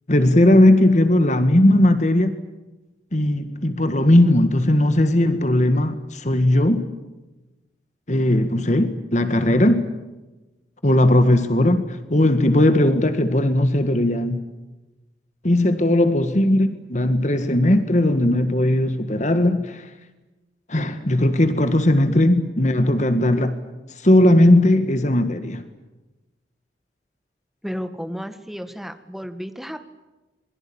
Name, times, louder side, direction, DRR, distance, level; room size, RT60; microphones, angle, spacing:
voice 1, 0.1-2.4 3.1-6.8 8.1-9.9 10.8-14.4 15.4-19.9 20.7-23.6 24.0-25.7, left 1 dB, 40° left, 10 dB, 1.8 m, -18 dB
voice 2, 16.2-16.5 16.8-17.0 27.6-29.8, equal, ahead, 8 dB, 1.9 m, -34 dB
27.0 x 22.5 x 8.8 m, 1.1 s
head